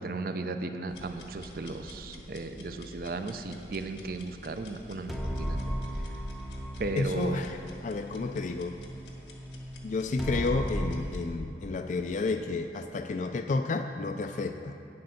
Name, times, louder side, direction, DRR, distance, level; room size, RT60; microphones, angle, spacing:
voice 1, 0.0-5.8 6.8-7.5, right 3 dB, 55° right, 8 dB, 0.5 m, -35 dB
sound 1, 0.9-11.3, left 2 dB, 90° left, 1.4 m, -50 dB
sound 2, 5.1-11.0, equal, ahead, 0.6 m, -36 dB
voice 2, 7.0-8.7 9.8-14.8, left 3 dB, 45° left, 6 dB, 0.3 m, -31 dB
8.8 x 7.7 x 5.7 m, 2.7 s
head